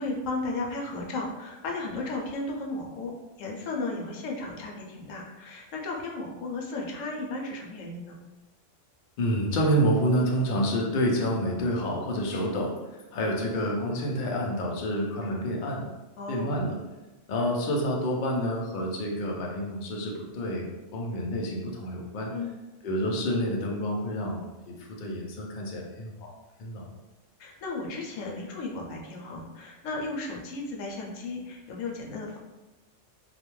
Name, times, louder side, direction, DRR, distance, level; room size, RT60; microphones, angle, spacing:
voice 1, 0.0-3.1 3.4-8.2 16.2-16.5 22.3-22.5 27.4-32.4, left 2 dB, 90° left, -1 dB, 1.0 m, -34 dB
voice 2, 9.2-12.7 13.1-15.9 16.3-16.8 17.3-22.3 22.8-26.3 26.6-26.8, equal, 55° left, -1 dB, 0.6 m, -28 dB
2.4 x 2.1 x 3.0 m, 1.1 s
omnidirectional pair, 1.3 m